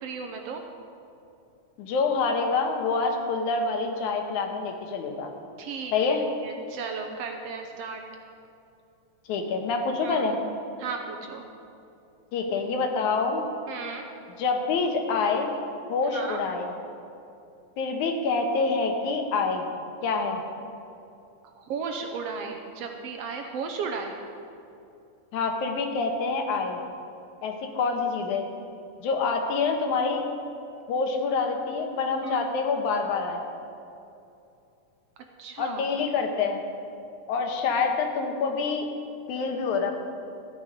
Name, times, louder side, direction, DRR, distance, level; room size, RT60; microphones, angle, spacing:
voice 1, 0.0-0.6 5.6-5.9 6.3-8.0 10.0-10.3 10.8-11.4 13.7-14.1 16.0-16.4 21.6-24.2 32.2-32.4 35.4-35.9, right 5 dB, 70° right, 4 dB, 1.6 m, -35 dB
voice 2, 1.8-5.3 5.9-6.3 9.3-10.4 12.3-13.4 14.4-15.5 15.9-16.7 17.8-19.7 20.0-20.4 25.3-26.8 27.4-28.4 29.0-30.3 30.9-33.4 35.6-36.6 37.3-38.9 39.3-39.9, left 4 dB, 85° left, 3 dB, 2.6 m, -26 dB
13.5 x 9.6 x 5.2 m, 2.7 s
omnidirectional pair, 3.3 m